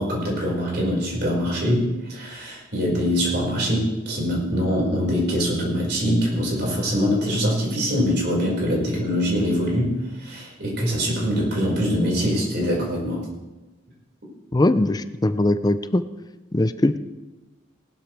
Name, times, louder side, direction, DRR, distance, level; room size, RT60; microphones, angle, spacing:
voice 1, 0.0-13.2, equal, 55° right, -3 dB, 5.3 m, -23 dB
voice 2, 14.5-16.0 16.5-17.0, left 1 dB, 20° left, 12 dB, 0.5 m, -20 dB
19.0 x 12.0 x 3.4 m, 1.1 s
head